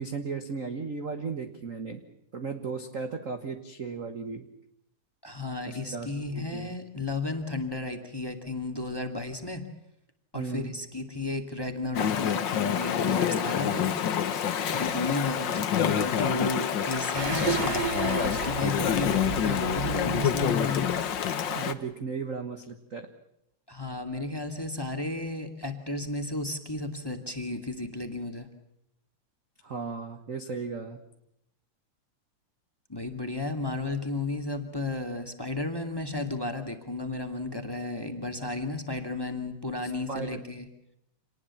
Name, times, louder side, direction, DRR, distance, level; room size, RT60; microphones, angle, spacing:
voice 1, 0.0-2.0 2.3-4.5 5.7-6.7 10.3-10.8 21.5-23.1 29.6-31.0 39.8-40.4, right 5 dB, 45° right, 7 dB, 1.0 m, -36 dB
voice 2, 5.2-9.6 10.3-13.9 14.7-20.9 23.7-28.5 32.9-40.7, left 2 dB, 10° left, 6 dB, 1.9 m, -33 dB
Chatter / Stream, 11.9-21.7, left 8 dB, 60° left, 1.3 m, -27 dB
sound 1, 17.1-21.4 21.8-21.9, right 6 dB, 75° right, 4.3 m, -33 dB
27.5 x 19.5 x 7.2 m, 0.79 s
omnidirectional pair, 3.5 m